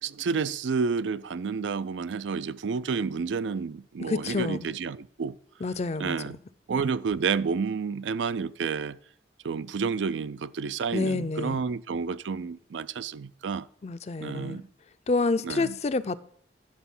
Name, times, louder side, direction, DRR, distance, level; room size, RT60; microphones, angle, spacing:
voice 1, 0.0-5.4 6.0-6.4 6.7-9.0 9.4-13.7 14.2-14.7 15.4-15.8, right 5 dB, 85° right, 0.4 m, -30 dB
voice 2, 4.1-4.6 5.6-6.2 10.9-11.6 13.8-14.6 15.1-16.2, left 3 dB, 35° left, 0.4 m, -28 dB
10.5 x 6.7 x 5.5 m
head